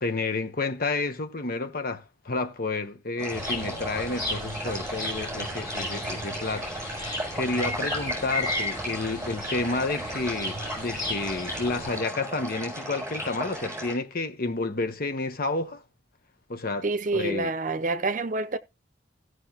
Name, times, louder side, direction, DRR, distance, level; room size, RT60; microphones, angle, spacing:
voice 1, 0.0-7.0 7.3-15.8 16.5-16.9 17.1-17.5, left 3 dB, 50° left, 1.0 m, -30 dB
sound 1, 3.2-13.9, equal, 15° right, 7.4 m, -35 dB
sound 2, 3.3-12.0, left 1 dB, 20° left, 6.5 m, -35 dB
voice 2, 16.8-18.6, right 3 dB, 45° right, 0.7 m, -27 dB
16.5 x 6.5 x 2.9 m
head